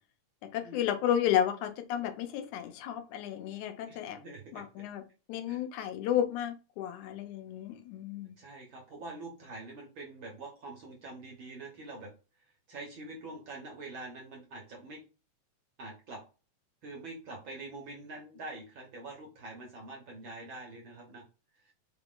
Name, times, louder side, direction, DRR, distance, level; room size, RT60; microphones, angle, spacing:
voice 1, 0.4-4.2 4.5-5.0 5.3-8.4, left 10 dB, 90° left, 2.2 m, -32 dB
voice 2, 3.9-4.6 5.5-5.6 8.4-12.1 12.7-15.0 15.8-16.2 16.8-21.2, right 2 dB, 55° right, 1.5 m, -45 dB
4.8 x 3.0 x 3.7 m
omnidirectional pair, 3.3 m